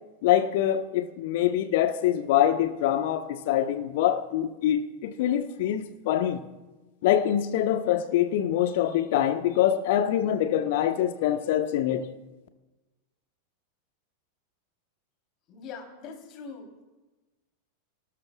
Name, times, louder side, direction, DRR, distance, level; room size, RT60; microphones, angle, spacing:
voice 1, 0.2-6.4 7.0-12.1, left 11 dB, 50° left, 1.2 m, -24 dB
voice 2, 15.5-16.8, left 5 dB, 35° left, 3.6 m, -42 dB
29.5 x 18.5 x 2.4 m
figure-of-eight pair, 90°, 0 cm